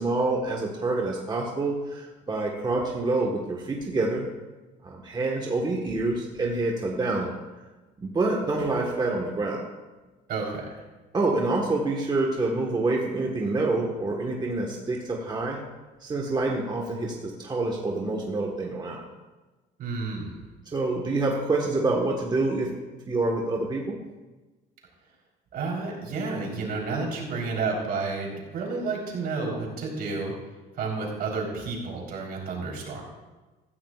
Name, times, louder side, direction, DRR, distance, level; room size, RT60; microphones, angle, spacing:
voice 1, 0.0-4.3 4.8-7.3 8.0-9.6 11.1-15.6 16.0-19.0 20.7-22.7 23.1-24.0, right 2 dB, 25° right, -1 dB, 1.4 m, -27 dB
voice 2, 10.3-10.7 19.8-20.4 25.5-30.3 30.7-33.0, right 4 dB, 65° right, -1 dB, 3.8 m, -31 dB
16.0 x 14.0 x 2.4 m, 1.2 s
cardioid pair, 110°, 17 cm